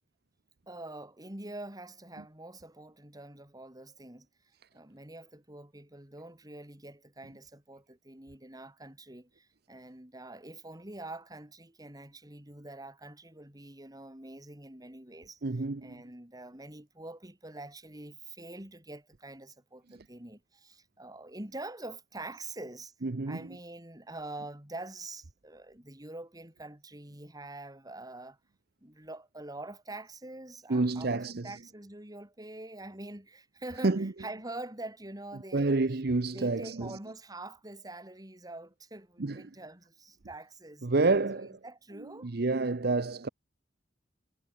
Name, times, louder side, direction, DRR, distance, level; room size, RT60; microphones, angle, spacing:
voice 1, 0.7-4.3 4.7-15.4 15.8-22.9 23.3-28.4 28.8-35.8 36.3-40.9 41.3-42.3, right 2 dB, 20° right, 3.4 m, -45 dB
voice 2, 15.4-16.0 23.0-23.6 30.7-31.5 33.8-34.1 35.5-37.0 39.2-39.4 40.8-41.6 42.0-43.3, right 3 dB, 60° right, 0.8 m, -29 dB
head